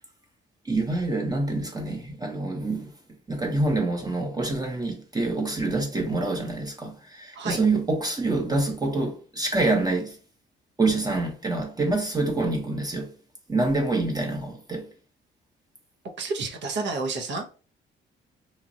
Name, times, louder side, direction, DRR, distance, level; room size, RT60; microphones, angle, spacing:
voice 1, 0.6-2.9 3.3-10.2 10.8-13.1 13.5-14.9, right 2 dB, 20° right, 0.7 m, -26 dB
voice 2, 16.2-17.4, right 3 dB, 65° right, 0.7 m, -30 dB
3.0 x 2.3 x 2.6 m
cardioid pair, 90°, 20 cm